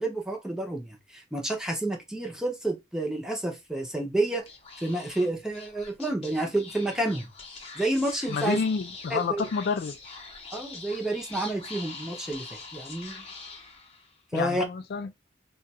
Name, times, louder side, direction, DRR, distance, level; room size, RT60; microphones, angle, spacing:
voice 1, 0.0-4.4 4.8-7.3 7.8-8.6 9.1-9.5 10.5-13.2 14.3-14.6, right 1 dB, 5° right, 0.7 m, -29 dB
Speech / Whispering, 4.4-14.2, left 4 dB, 35° left, 0.8 m, -44 dB
voice 2, 8.3-10.0 14.3-15.1, left 5 dB, 60° left, 0.3 m, -29 dB
2.5 x 2.3 x 4.0 m
head